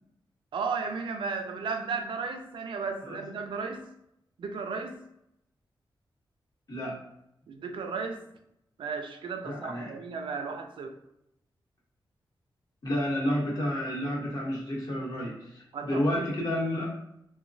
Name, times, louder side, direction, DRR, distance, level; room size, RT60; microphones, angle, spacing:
voice 1, 0.5-3.9 4.4-5.0 7.5-8.2 8.8-10.9 15.7-16.2, right 5 dB, 80° right, 6 dB, 0.4 m, -34 dB
voice 2, 9.4-9.9 12.8-15.3 15.8-16.9, equal, 50° left, -4 dB, 1.0 m, -30 dB
2.9 x 2.1 x 2.6 m, 0.80 s
wide cardioid pair, 115°, 8 cm